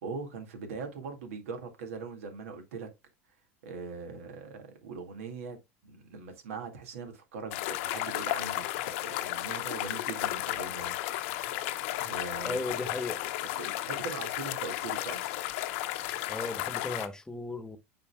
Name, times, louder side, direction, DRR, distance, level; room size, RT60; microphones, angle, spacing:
voice 1, 0.0-2.9 3.6-5.6 5.8-8.7 9.0-11.0 12.0-12.8 13.4-15.3, right 4 dB, 75° right, 1.9 m, -41 dB
sound 1, 7.5-17.1, left 15 dB, 65° left, 0.8 m, -34 dB
voice 2, 12.4-13.2 16.3-17.8, left 2 dB, 10° left, 1.1 m, -36 dB
8.8 x 5.2 x 2.3 m
hypercardioid pair, 85°, 7 cm